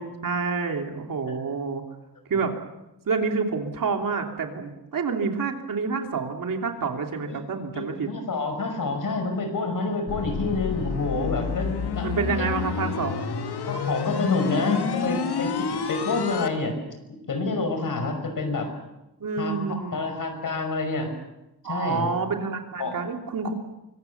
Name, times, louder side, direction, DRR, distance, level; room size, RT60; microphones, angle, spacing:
voice 1, 0.0-1.8 2.3-2.5 3.1-8.1 12.0-13.3 19.2-20.2 21.6-23.5, right 4 dB, 60° right, 3 dB, 3.1 m, -28 dB
voice 2, 7.7-12.1 13.7-16.8 17.3-18.7 19.4-21.1 21.6-22.1 22.8-23.0, left 3 dB, 55° left, 6 dB, 5.8 m, -28 dB
sound 1, 10.1-16.5, left 6 dB, 85° left, 2.1 m, -29 dB
25.0 x 23.0 x 7.1 m, 0.94 s
wide cardioid pair, 165°, 38 cm